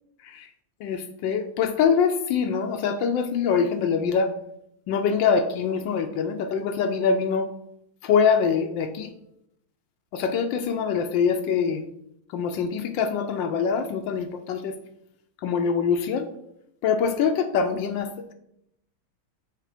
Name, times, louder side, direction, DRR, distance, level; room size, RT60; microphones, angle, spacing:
voice 1, 0.8-4.3 4.9-7.5 8.0-9.1 10.1-11.9 12.3-14.8 15.4-16.3 16.8-18.3, left 6 dB, 75° left, 8 dB, 1.2 m, -24 dB
6.5 x 3.7 x 4.9 m, 0.78 s
omnidirectional pair, 2.2 m